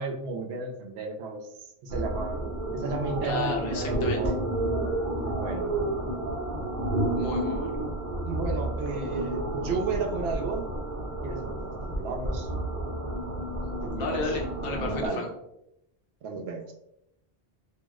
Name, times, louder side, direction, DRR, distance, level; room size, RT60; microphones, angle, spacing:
voice 1, 0.0-2.4 2.7-4.5 5.2-5.7 8.2-10.7 11.2-12.5 13.8-14.2 14.6-15.2 16.2-16.6, right 4 dB, 85° right, 2 dB, 0.8 m, -33 dB
sound 1, 1.9-15.1, right 1 dB, 55° right, 0.9 m, -31 dB
voice 2, 3.2-4.2 7.2-7.7 14.0-15.3, left 3 dB, 65° left, 0 dB, 0.9 m, -32 dB
2.6 x 2.0 x 3.5 m, 0.80 s
omnidirectional pair, 1.1 m